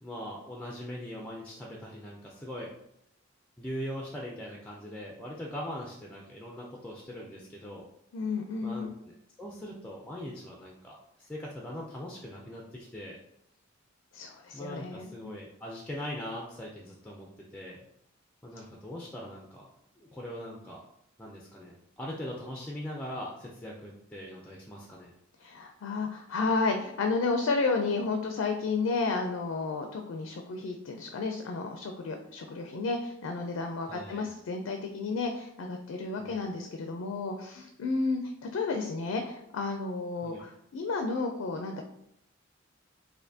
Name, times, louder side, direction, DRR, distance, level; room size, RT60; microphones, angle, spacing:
voice 1, 0.0-2.7 3.6-7.8 8.6-13.2 14.5-17.8 18.4-19.7 20.0-20.8 21.2-25.1 33.9-34.3 36.2-36.4 40.2-40.4, equal, 5° left, -2 dB, 0.4 m, -41 dB
voice 2, 8.1-8.9 14.1-15.1 25.4-41.8, left 3 dB, 80° left, 4 dB, 0.4 m, -32 dB
4.2 x 2.6 x 2.7 m, 0.79 s
head